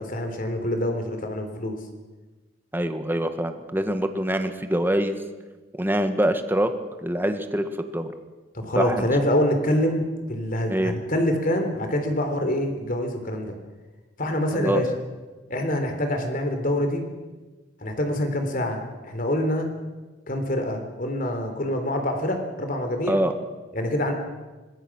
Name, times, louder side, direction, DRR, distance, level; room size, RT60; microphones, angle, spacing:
voice 1, 0.0-1.8 8.5-13.5 14.2-14.9 15.5-17.0 17.8-19.7 20.3-23.2 23.7-24.1, left 1 dB, 45° left, 6 dB, 3.6 m, -25 dB
voice 2, 2.7-5.2 5.7-6.7 7.0-8.1 8.8-9.0 10.7-10.9 14.5-14.8 23.1-23.3, right 1 dB, 10° right, 8 dB, 1.5 m, -24 dB
25.5 x 20.5 x 6.3 m, 1.2 s
head